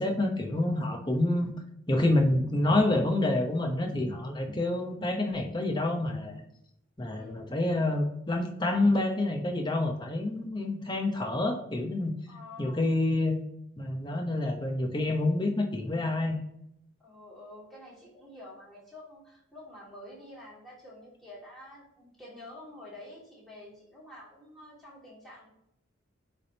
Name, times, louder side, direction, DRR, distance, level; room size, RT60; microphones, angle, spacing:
voice 1, 0.0-1.5 1.9-6.4 7.0-12.2 12.6-13.4 13.8-16.4, left 2 dB, 20° left, 4 dB, 0.9 m, -28 dB
voice 2, 12.3-12.9 17.0-25.5, left 1 dB, ahead, -7 dB, 2.5 m, -48 dB
9.5 x 3.5 x 2.9 m, 0.76 s
head